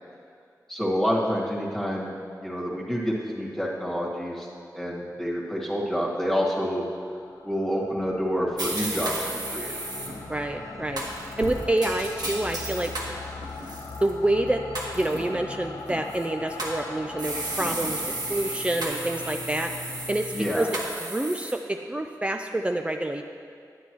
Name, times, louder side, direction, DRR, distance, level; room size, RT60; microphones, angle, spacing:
voice 1, 0.7-4.5 4.7-6.8 7.4-9.8 20.3-20.7, equal, 5° left, -5 dB, 1.7 m, -28 dB
sound 1, 7.0-20.6, left 4 dB, 90° left, 0.5 m, -41 dB
sound 2, 8.6-10.1 11.0-13.1 13.6-14.1 14.8-15.2 16.1-16.8 17.2-21.5, right 2 dB, 70° right, 1.5 m, -33 dB
sound 3, 10.0-20.1, right 1 dB, 50° right, 0.9 m, -44 dB
voice 2, 10.3-12.9 14.0-14.6 14.9-18.0 18.3-19.7 20.1-23.2, right 1 dB, 15° right, 4 dB, 0.4 m, -27 dB
10.0 x 9.9 x 3.1 m, 2.2 s
wide cardioid pair, 90°, 7 cm